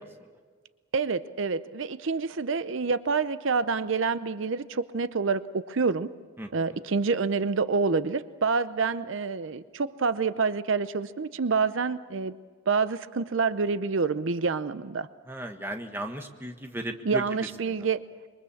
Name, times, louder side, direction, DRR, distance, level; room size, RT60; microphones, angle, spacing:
voice 1, 0.9-6.1 6.5-12.4 12.7-15.1 17.1-18.0, right 4 dB, 70° right, 13 dB, 0.6 m, -27 dB
voice 2, 6.4-6.8 15.3-17.8, right 1 dB, 10° right, 4 dB, 1.4 m, -36 dB
26.5 x 23.0 x 7.2 m, 1.5 s
head